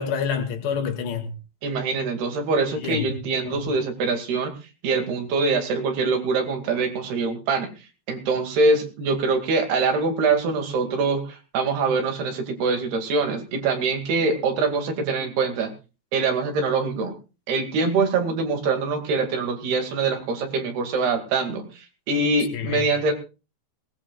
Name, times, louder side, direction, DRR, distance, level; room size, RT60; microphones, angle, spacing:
voice 1, 0.0-1.3 2.8-3.1 3.4-3.6 22.5-22.9, left 6 dB, 75° left, 4.2 m, -28 dB
voice 2, 1.6-4.5 4.8-7.7 8.1-15.7 16.1-17.1 17.5-23.1, right 4 dB, 70° right, 4.1 m, -24 dB
20.5 x 17.5 x 2.3 m
omnidirectional pair, 4.9 m